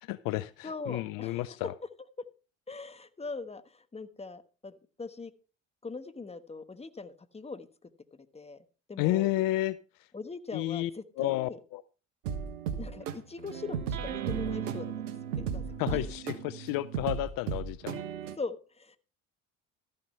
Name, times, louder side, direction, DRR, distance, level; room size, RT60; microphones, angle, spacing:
voice 1, 0.0-1.7 9.0-9.8 10.5-10.9 11.2-11.8 15.8-18.0, left 16 dB, 60° left, 17 dB, 0.6 m, -31 dB
voice 2, 0.6-1.6 2.7-5.3 5.8-9.3 10.1-11.6 12.8-16.1 18.4-19.0, left 4 dB, 15° left, 11 dB, 1.2 m, -42 dB
sound 1, 12.2-18.4, right 7 dB, 80° right, 1.3 m, -35 dB
13.5 x 6.6 x 5.5 m, 0.36 s
hypercardioid pair, 65°, 38 cm